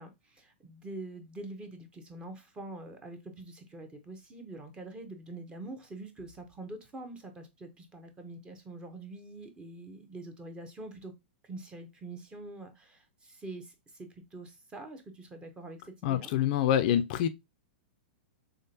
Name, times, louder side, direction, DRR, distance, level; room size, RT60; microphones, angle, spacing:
voice 1, 0.0-11.1 11.4-16.3, right 2 dB, 15° right, 0.9 m, -45 dB
voice 2, 16.0-17.3, left 10 dB, 50° left, 0.4 m, -26 dB
3.6 x 3.3 x 2.7 m
hypercardioid pair, 130°, 6 cm